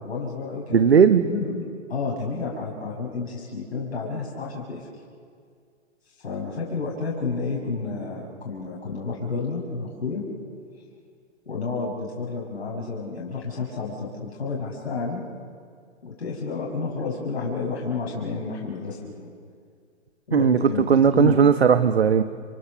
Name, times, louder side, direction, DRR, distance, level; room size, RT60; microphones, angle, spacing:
voice 1, 0.0-4.9 6.2-10.2 11.5-15.2 16.0-19.3 20.3-21.4, left 4 dB, 60° left, -3 dB, 6.1 m, -30 dB
voice 2, 0.7-1.2 20.3-22.2, right 7 dB, 60° right, 10 dB, 1.2 m, -17 dB
30.0 x 28.0 x 6.8 m, 2.1 s
figure-of-eight pair, 125°, 36 cm